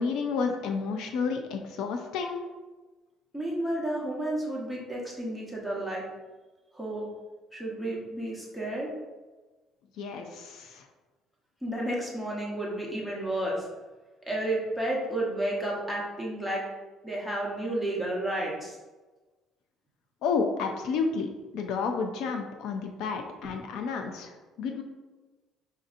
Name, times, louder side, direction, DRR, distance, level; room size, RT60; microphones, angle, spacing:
voice 1, 0.0-2.4 10.0-10.9 20.2-24.8, left 5 dB, 75° left, 4 dB, 0.4 m, -31 dB
voice 2, 3.3-6.0 6.7-7.1 7.5-8.9 11.6-13.7 14.3-16.6 17.0-18.8, right 1 dB, 5° left, -4 dB, 0.9 m, -31 dB
5.1 x 2.7 x 2.5 m, 1.2 s
cardioid pair, 140°, 0 cm